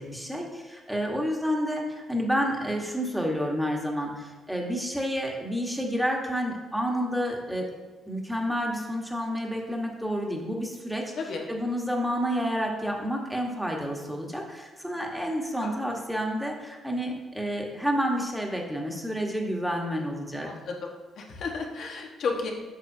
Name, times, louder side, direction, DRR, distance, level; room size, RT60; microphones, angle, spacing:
voice 1, 0.0-7.7 8.1-11.1 11.5-20.5, equal, 5° right, 0 dB, 1.4 m, -29 dB
voice 2, 20.4-20.9 21.2-22.5, left 4 dB, 65° left, 1 dB, 1.4 m, -32 dB
8.7 x 6.5 x 2.8 m, 1.3 s
cardioid pair, 90°, 0 cm